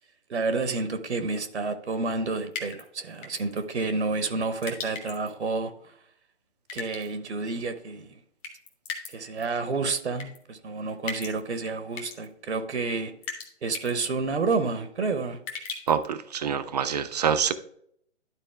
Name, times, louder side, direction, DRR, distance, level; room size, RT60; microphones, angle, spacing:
voice 1, 0.3-5.9 6.7-8.2 9.1-13.1 13.6-15.4, right 3 dB, 70° right, 1.0 m, -29 dB
sound 1, 2.5-2.8 3.2-3.6 4.6-5.3 6.7-7.1 8.4-9.1 9.4-9.5 10.2-10.4 11.1-11.4 11.9-12.3 13.2-13.5 13.7-13.9 15.5-16.0, left 5 dB, 15° left, 0.7 m, -37 dB
voice 2, 15.9-17.5, right 7 dB, 35° right, 0.5 m, -26 dB
11.5 x 4.1 x 3.4 m
figure-of-eight pair, 145°, 35 cm